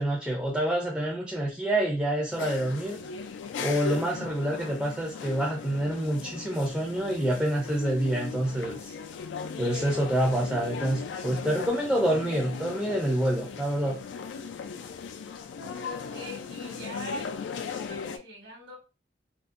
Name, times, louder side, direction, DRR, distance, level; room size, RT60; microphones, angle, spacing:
voice 1, 0.0-3.0 3.6-8.9 9.6-14.0, right 1 dB, 5° right, -2 dB, 0.4 m, -27 dB
sound 1, 2.3-18.2, left 6 dB, 85° left, 0.3 m, -38 dB
voice 2, 15.7-17.3 17.6-18.8, right 1 dB, 80° right, -3 dB, 1.2 m, -42 dB
2.6 x 2.0 x 2.3 m, 0.31 s
head